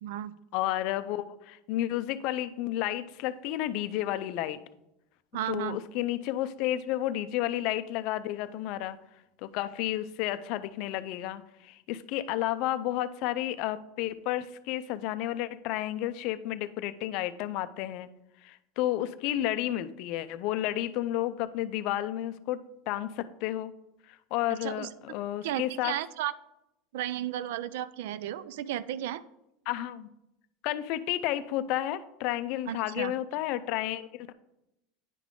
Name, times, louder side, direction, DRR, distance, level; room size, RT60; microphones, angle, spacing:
voice 1, 0.0-0.3 5.3-5.8 24.5-24.9 25.4-26.3 26.9-29.2 32.7-33.1, right 12 dB, 80° right, 17 dB, 0.3 m, -34 dB
voice 2, 0.5-4.6 5.5-9.0 9.4-18.1 18.4-23.7 24.1-25.9 29.7-30.1 30.6-34.3, left 13 dB, 55° left, 13 dB, 0.4 m, -31 dB
9.8 x 3.7 x 3.6 m, 0.87 s
supercardioid pair, 145°, 0 cm